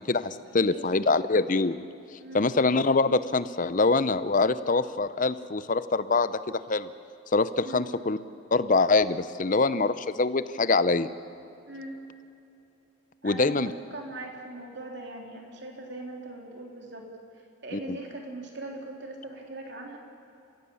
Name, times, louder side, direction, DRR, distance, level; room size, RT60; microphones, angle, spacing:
voice 1, 0.0-1.8 2.3-6.9 7.3-8.2 8.5-11.1 13.2-13.7, left 3 dB, 40° left, 14 dB, 0.6 m, -24 dB
voice 2, 2.2-2.5 7.6-7.9 11.7-12.0 13.2-13.6 13.9-17.0 17.3-20.0, right 2 dB, 55° right, 1 dB, 3.4 m, -40 dB
29.0 x 16.5 x 7.1 m, 2.8 s
head